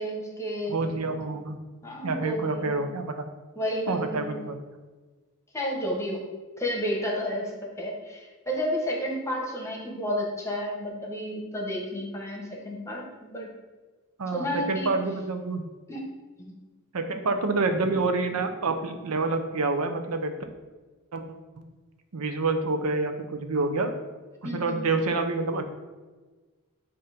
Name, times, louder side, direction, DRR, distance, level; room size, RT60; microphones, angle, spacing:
voice 1, 0.0-1.2 1.8-2.8 3.5-4.4 5.5-6.2 6.6-7.5 7.8-13.5 14.3-14.9 15.9-16.1 16.4-16.5 24.4-24.9, equal, 15° left, -1 dB, 1.1 m, -31 dB
voice 2, 0.7-1.6 2.0-3.3 3.9-4.6 14.2-15.7 16.9-20.4 21.1-21.2 21.6-21.7 22.1-23.9 24.4-25.6, right 3 dB, 90° right, 6 dB, 0.7 m, -27 dB
7.9 x 2.8 x 5.0 m, 1.3 s
head